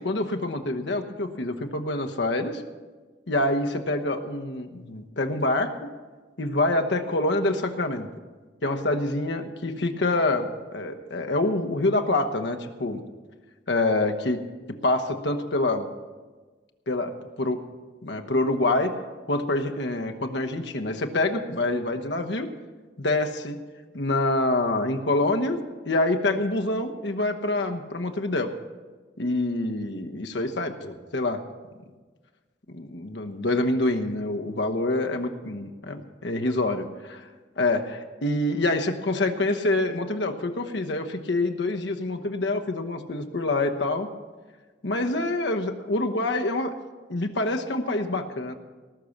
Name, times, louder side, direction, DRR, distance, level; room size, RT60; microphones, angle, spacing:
voice 1, 0.0-2.6 3.3-5.9 6.4-8.1 8.6-13.0 13.7-14.4 14.7-15.9 16.9-17.6 18.0-18.9 19.3-22.5 23.0-23.6 23.9-25.6 25.9-28.5 29.2-31.4 32.7-37.2 37.6-44.1 44.8-46.7 47.1-48.5, left 2 dB, 70° left, 5 dB, 1.1 m, -26 dB
18.5 x 6.5 x 7.2 m, 1.3 s
head